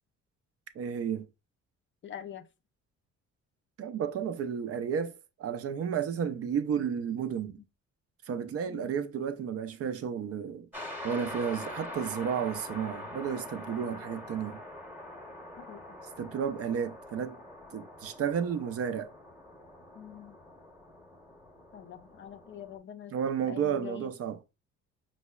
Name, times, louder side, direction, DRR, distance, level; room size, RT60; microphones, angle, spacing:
voice 1, 0.8-1.3 3.8-5.1 5.4-7.6 8.3-10.7 11.0-14.6 16.2-17.4 17.7-19.1 23.1-24.4, right 7 dB, 50° right, 0.4 m, -32 dB
voice 2, 2.0-2.5 8.7-8.9 13.8-14.0 15.6-16.0 20.0-20.4 21.7-23.1 23.4-24.1, left 9 dB, 40° left, 0.4 m, -45 dB
sound 1, 10.7-22.8, left 1 dB, 5° right, 0.9 m, -44 dB
5.3 x 2.1 x 2.2 m
cardioid pair, 90°, 30 cm